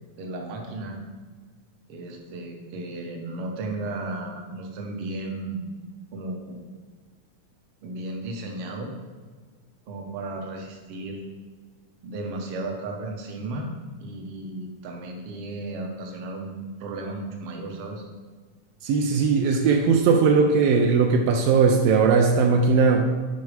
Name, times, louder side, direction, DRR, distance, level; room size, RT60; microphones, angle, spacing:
voice 1, 0.2-1.0 1.9-5.7 6.1-6.6 7.8-8.9 9.9-11.2 12.0-18.0, right 2 dB, 70° right, 1 dB, 1.5 m, -34 dB
voice 2, 18.8-23.1, right 5 dB, 85° right, 2 dB, 1.4 m, -19 dB
6.6 x 4.0 x 4.8 m, 1.5 s
omnidirectional pair, 3.4 m